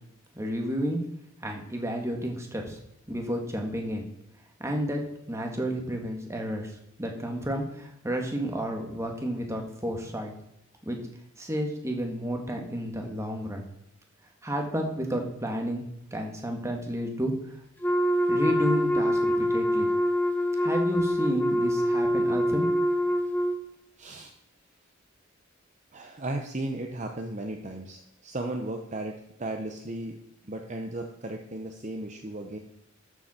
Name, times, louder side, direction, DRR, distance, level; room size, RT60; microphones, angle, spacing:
voice 1, 0.4-1.0 1.4-2.8 3.1-4.1 4.6-5.0 5.3-6.7 7.0-10.3 10.8-11.0 11.4-13.7 14.4-15.8 16.1-17.3 18.3-19.9 20.6-22.7 23.0-23.1, equal, 15° right, 2 dB, 1.8 m, -31 dB
Wind instrument woodwind instrument, 17.8-23.6, equal, 10° left, 0.9 m, -25 dB
voice 2, 24.0-24.3 25.9-30.2 30.4-32.6, right 1 dB, 35° right, 3 dB, 0.9 m, -35 dB
13.0 x 7.3 x 4.4 m, 0.79 s
head